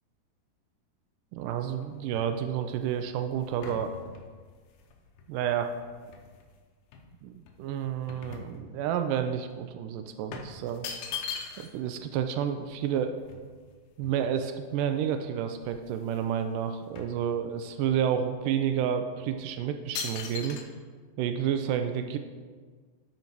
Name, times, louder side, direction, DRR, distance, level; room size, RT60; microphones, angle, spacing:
voice 1, 1.3-3.9 5.3-5.7 7.2-10.9 11.6-13.1 14.0-20.6 21.2-22.2, right 9 dB, 85° right, 7 dB, 1.9 m, -30 dB
sound 1, 1.4-6.5 6.9-9.1 9.4-9.6 10.3-11.9 12.2-12.3 12.5-14.6 15.2-15.3 15.5-16.3 16.6-17.8 18.4-18.5 19.2-19.4 19.9-20.6, left 6 dB, 70° left, 2.1 m, -41 dB
12.0 x 5.3 x 4.5 m, 1.5 s
omnidirectional pair, 4.3 m